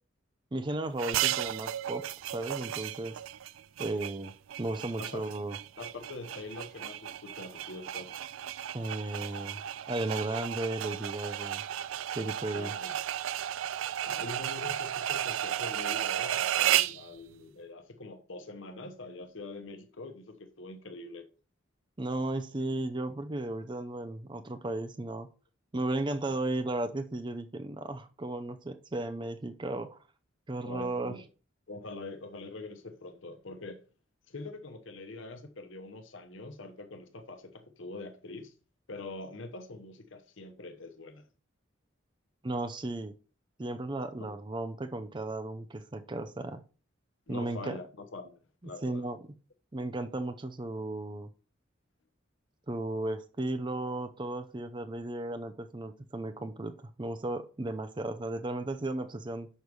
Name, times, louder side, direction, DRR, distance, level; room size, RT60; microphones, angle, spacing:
voice 1, 0.5-2.0 2.3-3.2 3.8-4.3 4.6-5.6 8.7-9.6 9.9-11.6 12.1-12.7 22.0-25.3 25.7-30.0 30.5-31.1 42.4-43.1 43.6-46.6 47.3-47.8 48.8-49.2 49.7-51.3 52.7-59.5, right 2 dB, 25° right, 0.5 m, -35 dB
sound 1, 1.0-17.0, right 11 dB, 80° right, 0.4 m, -34 dB
voice 2, 5.8-8.1 12.5-12.9 14.0-21.3 30.6-31.2 31.7-33.8 34.3-38.5 38.9-41.2 44.2-44.3 47.3-49.1, left 2 dB, 70° left, 0.9 m, -44 dB
6.4 x 4.7 x 5.3 m
head